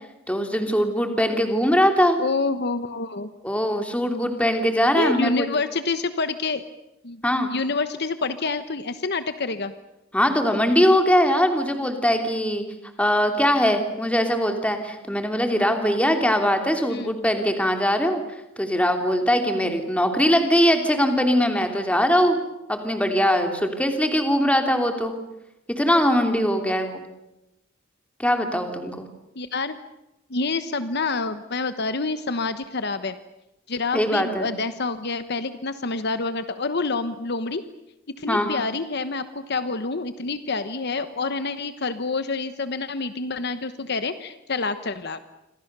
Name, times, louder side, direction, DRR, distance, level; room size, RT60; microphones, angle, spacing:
voice 1, 0.3-2.2 3.4-5.4 7.2-7.5 10.1-12.6 13.0-18.2 18.6-22.4 22.7-25.1 25.7-27.0 28.2-29.1 33.9-34.5 38.3-38.5, equal, 5° left, 5 dB, 3.0 m, -21 dB
voice 2, 2.2-3.3 5.0-6.7 7.0-7.2 7.5-9.7 16.9-17.1 29.3-29.8 30.3-33.2 33.7-37.6 38.2-45.2, left 3 dB, 50° left, 11 dB, 1.1 m, -27 dB
28.5 x 25.5 x 6.8 m, 0.93 s
head